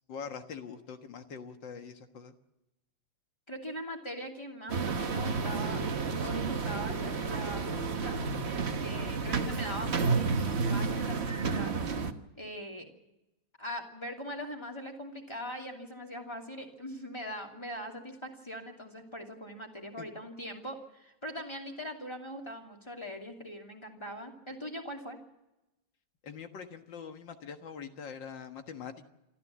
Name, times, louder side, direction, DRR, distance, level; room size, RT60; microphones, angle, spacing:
voice 1, 0.1-2.3 20.0-20.1 26.2-29.1, left 6 dB, 80° left, 7 dB, 2.2 m, -43 dB
voice 2, 3.5-5.8 6.2-8.2 8.8-11.7 12.3-12.9 13.6-25.2, equal, 15° left, 1 dB, 2.8 m, -41 dB
sound 1, 4.7-12.1, right 4 dB, 40° right, 1.2 m, -31 dB
26.5 x 14.0 x 7.5 m, 0.96 s
omnidirectional pair, 2.0 m